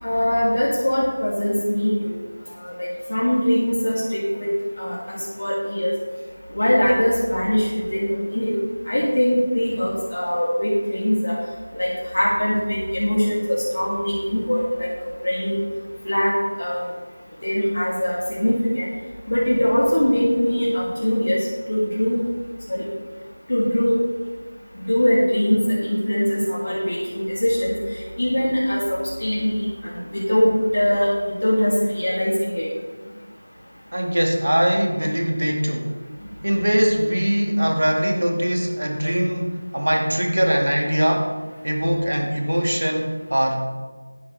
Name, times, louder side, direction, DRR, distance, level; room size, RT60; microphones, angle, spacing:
voice 1, 0.0-2.1 2.6-4.5 4.8-5.9 6.5-8.5 8.9-11.4 11.7-14.9 15.2-15.6 16.0-16.9 17.4-18.9 19.3-22.2 22.7-22.8 23.5-23.9 24.7-27.7 28.2-32.6, equal, 55° left, -6 dB, 2.7 m, -22 dB
voice 2, 33.9-35.9 36.4-41.3 41.6-43.6, equal, 80° right, 2 dB, 2.2 m, -21 dB
12.0 x 10.0 x 3.5 m, 1.4 s
figure-of-eight pair, 175°, 0 cm